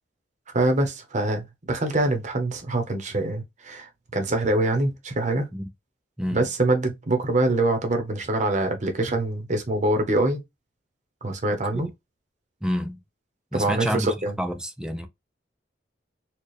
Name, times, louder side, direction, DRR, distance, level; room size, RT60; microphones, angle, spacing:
voice 1, 0.5-5.5 6.3-10.4 11.2-11.9 13.5-14.3, right 2 dB, 40° right, 1.0 m, -24 dB
voice 2, 6.2-6.5 11.7-11.9 12.6-13.0 13.5-14.1 14.4-15.1, equal, 5° right, 0.5 m, -28 dB
4.3 x 2.3 x 3.2 m
head